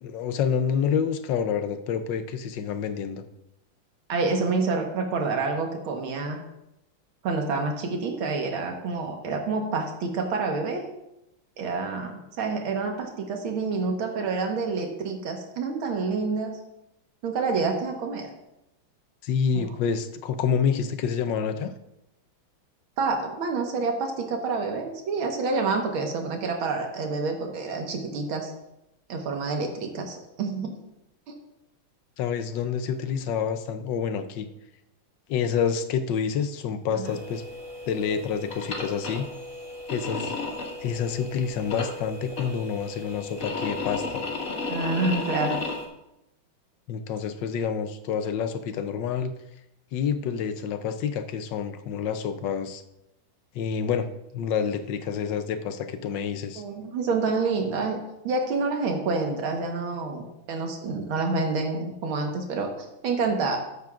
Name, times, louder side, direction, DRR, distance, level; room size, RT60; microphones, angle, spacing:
voice 1, 0.0-3.2 19.2-21.7 32.2-34.5 35.3-37.4 37.9-39.3 39.9-40.4 40.8-44.2 46.9-49.3 49.9-52.8 53.5-54.1 54.3-56.6, left 7 dB, 70° left, 9 dB, 1.2 m, -28 dB
voice 2, 4.1-6.4 7.2-10.8 11.6-12.1 12.4-16.5 17.2-18.3 19.6-19.7 23.0-28.5 29.1-30.7 37.0-37.1 44.7-45.6 56.6-58.0 58.2-63.6, right 4 dB, 85° right, 2 dB, 2.0 m, -28 dB
sound 1, 37.0-45.8, left 3 dB, 45° left, 2.0 m, -34 dB
13.5 x 9.5 x 2.4 m, 0.88 s
omnidirectional pair, 2.2 m